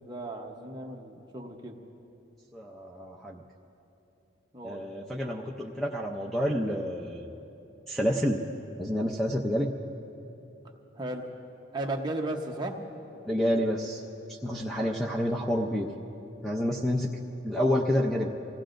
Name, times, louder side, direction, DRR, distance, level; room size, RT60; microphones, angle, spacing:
voice 1, 0.0-1.8 4.5-4.8 10.6-11.3 11.7-12.8, right 2 dB, 20° right, 1 dB, 1.0 m, -35 dB
voice 2, 2.5-3.4 4.6-7.3 7.9-8.4 8.8-9.7 13.3-14.0 14.4-15.9 16.4-17.1 17.4-18.3, equal, ahead, -1 dB, 0.6 m, -28 dB
26.0 x 17.0 x 2.6 m, 3.0 s
head